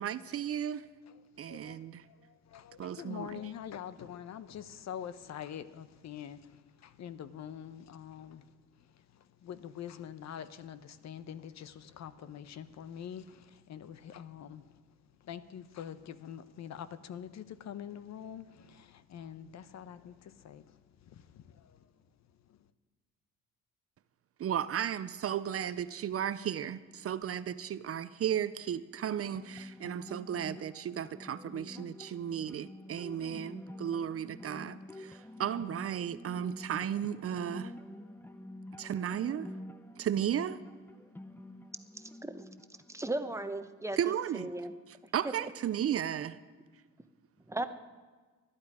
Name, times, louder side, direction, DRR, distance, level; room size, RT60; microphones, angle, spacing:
voice 1, 0.0-0.9 1.4-2.0 2.8-3.3 24.4-37.7 38.8-39.5 40.0-40.6 44.0-44.5 44.9-46.4, right 9 dB, 50° right, 15 dB, 0.6 m, -34 dB
voice 2, 1.0-22.7, left 9 dB, 65° left, 13 dB, 0.8 m, -46 dB
sound 1, 28.9-43.9, left 1 dB, 5° left, 0.7 m, -48 dB
voice 3, 42.9-44.0 44.4-44.7 47.5-47.6, right 2 dB, 10° right, 9 dB, 1.0 m, -35 dB
20.5 x 11.5 x 4.9 m, 1.4 s
cardioid pair, 90°, 30 cm